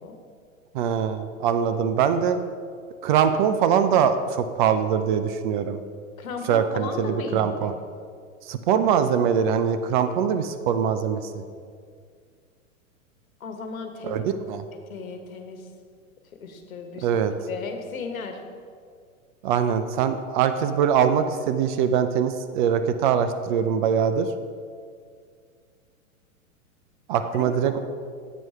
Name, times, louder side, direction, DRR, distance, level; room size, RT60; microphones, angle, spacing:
voice 1, 0.7-2.4 3.0-5.8 6.5-7.7 8.5-11.4 14.0-14.6 17.0-17.3 19.4-24.3 27.1-27.8, right 8 dB, 40° right, 10 dB, 0.4 m, -23 dB
voice 2, 6.2-7.7 13.4-14.3 14.9-15.6 16.4-17.1 17.4-18.4 27.2-27.8, left 4 dB, 75° left, 5 dB, 1.3 m, -35 dB
8.2 x 4.6 x 5.5 m, 2.1 s
hypercardioid pair, 115°, 41 cm